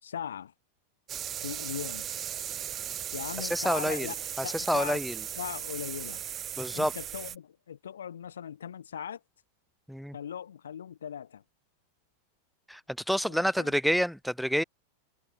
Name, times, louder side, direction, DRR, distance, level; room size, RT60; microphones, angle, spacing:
voice 1, 0.0-0.5 1.4-2.1 3.1-4.1 4.4-5.0 5.4-6.2 6.7-9.2 10.1-11.4 13.3-13.7, left 8 dB, 65° left, 1.7 m, -39 dB
sound 1, 1.1-7.4, right 10 dB, 25° right, 1.0 m, -37 dB
voice 2, 3.4-4.1 4.4-5.1 6.6-6.9 9.9-10.2 12.7-12.8 13.1-14.6, equal, ahead, 2.9 m, -28 dB
figure-of-eight pair, 90°, 0 cm